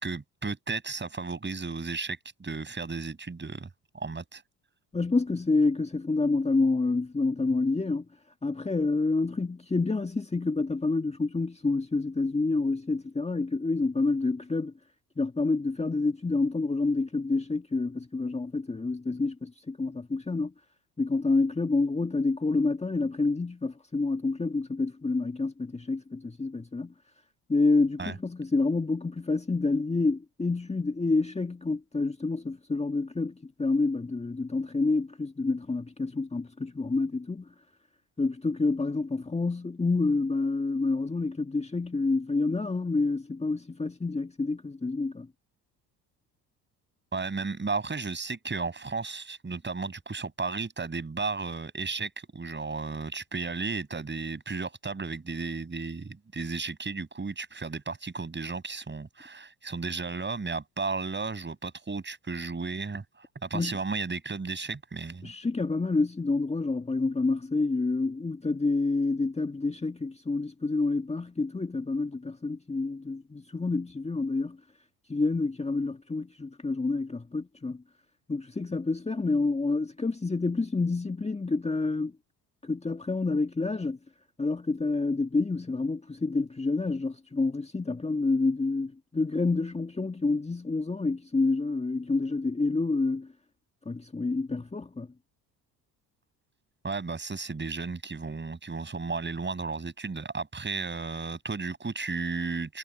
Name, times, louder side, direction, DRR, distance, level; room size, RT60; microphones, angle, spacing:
voice 1, 0.0-3.7 3.9-4.4 28.0-28.2 47.1-65.3 96.8-102.8, right 4 dB, 20° right, 6.2 m, -34 dB
voice 2, 4.9-8.1 8.4-14.7 15.2-20.5 21.0-26.9 27.5-37.5 38.2-45.3 63.5-63.8 65.2-74.6 75.1-77.8 78.3-82.1 82.6-84.0 84.4-93.3 93.9-95.1, left 3 dB, 15° left, 1.7 m, -28 dB
hypercardioid pair, 55°, 48 cm